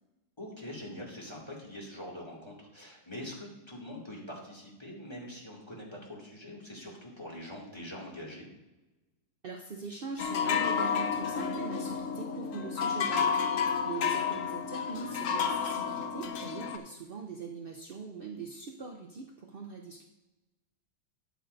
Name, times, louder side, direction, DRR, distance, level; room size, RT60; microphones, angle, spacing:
voice 1, 0.4-8.5 14.0-14.3, left 1 dB, 15° left, -2 dB, 2.3 m, -44 dB
voice 2, 9.4-20.0, right 5 dB, 65° right, 2 dB, 0.5 m, -42 dB
sound 1, 10.2-16.8, left 6 dB, 60° left, 0.9 m, -31 dB
13.0 x 8.9 x 2.7 m, 1.0 s
omnidirectional pair, 1.9 m